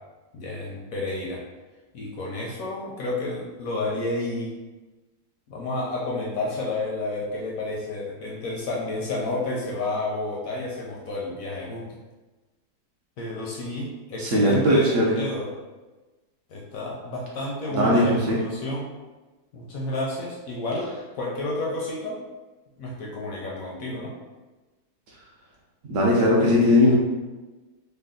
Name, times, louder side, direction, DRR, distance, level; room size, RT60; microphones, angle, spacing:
voice 1, 0.3-1.4 1.9-4.6 5.5-11.9 13.2-15.5 16.5-18.9 19.5-22.2 22.8-24.1, left 2 dB, 70° left, -3 dB, 0.8 m, -30 dB
voice 2, 14.2-15.1 17.7-18.4 25.9-26.9, left 1 dB, 65° right, -3 dB, 0.8 m, -19 dB
3.3 x 2.2 x 3.6 m, 1.2 s
omnidirectional pair, 1.9 m